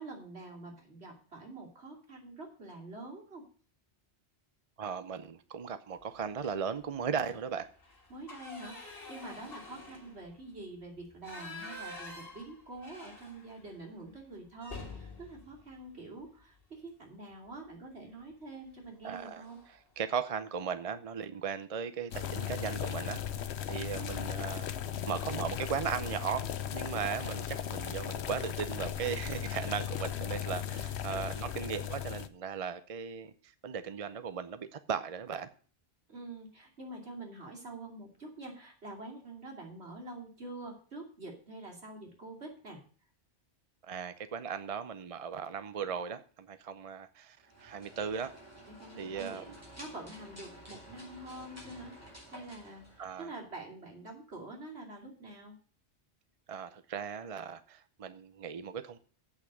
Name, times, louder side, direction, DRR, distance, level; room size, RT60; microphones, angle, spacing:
voice 1, 0.0-3.4 8.1-19.6 24.0-24.1 36.1-42.8 48.7-55.5, right 2 dB, 75° right, 3.0 m, -46 dB
voice 2, 4.8-7.7 19.0-19.4 20.0-24.7 25.1-26.5 26.7-35.5 43.8-48.3 49.0-49.4 53.0-53.3 56.5-59.0, right 7 dB, 40° right, 0.6 m, -37 dB
sound 1, 6.4-6.8 7.2-7.3 7.7-13.8 14.1-14.2 14.6-16.7 18.1-18.3 18.7-18.9 19.1-19.8, left 2 dB, 60° left, 2.8 m, -48 dB
sound 2, 22.1-32.3, left 10 dB, 75° left, 1.0 m, -37 dB
sound 3, 47.4-53.6, right 1 dB, 15° right, 4.5 m, -52 dB
8.4 x 6.1 x 7.6 m
omnidirectional pair, 1.1 m